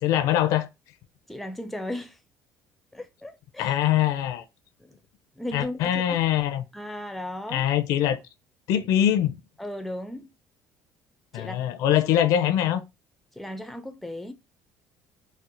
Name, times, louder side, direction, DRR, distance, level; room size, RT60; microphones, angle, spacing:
voice 1, 0.0-0.7 3.6-4.4 5.5-6.7 7.5-8.2 8.7-9.4 11.3-12.8, left 11 dB, 75° left, 0.5 m, -23 dB
voice 2, 1.3-2.2 2.9-3.8 4.8-5.0 5.4-6.2 6.7-7.7 9.6-10.3 11.3-11.6 13.3-14.3, left 1 dB, ahead, 0.4 m, -36 dB
4.2 x 2.1 x 2.5 m
cardioid pair, 145°, 6 cm